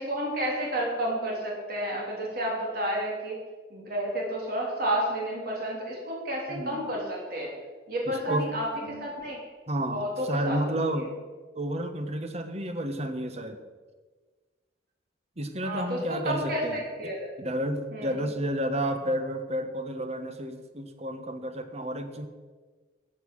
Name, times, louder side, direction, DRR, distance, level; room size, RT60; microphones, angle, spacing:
voice 1, 0.0-3.4 3.7-7.5 7.9-9.4 9.9-10.6 10.9-11.1 15.6-17.3 17.9-18.3, equal, 60° right, -2 dB, 3.5 m, -31 dB
voice 2, 6.5-6.9 8.1-8.5 8.8-9.1 9.7-11.1 11.6-13.6 15.4-16.8 17.0-22.3, right 1 dB, 40° right, 8 dB, 1.3 m, -31 dB
14.5 x 8.6 x 6.4 m, 1.4 s
head